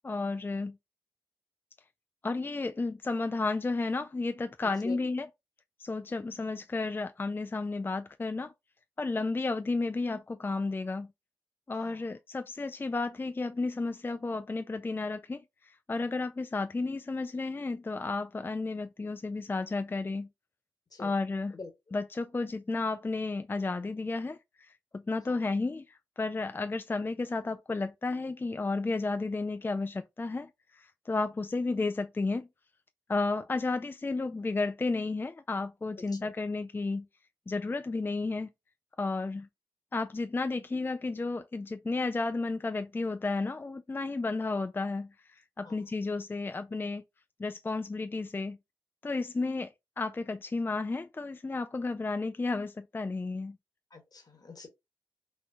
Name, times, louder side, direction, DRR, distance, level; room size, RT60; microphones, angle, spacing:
voice 1, 0.0-0.8 2.2-5.3 5.8-8.5 9.0-11.1 11.7-20.3 21.0-21.6 21.9-32.5 33.1-37.1 37.5-38.5 39.0-39.5 39.9-45.1 45.6-47.0 47.4-48.6 49.0-53.6, left 3 dB, 25° left, 0.4 m, -32 dB
voice 2, 36.0-36.3 45.6-45.8 53.9-54.7, left 3 dB, 50° left, 1.2 m, -46 dB
4.3 x 2.2 x 2.7 m
supercardioid pair, 40°, 9 cm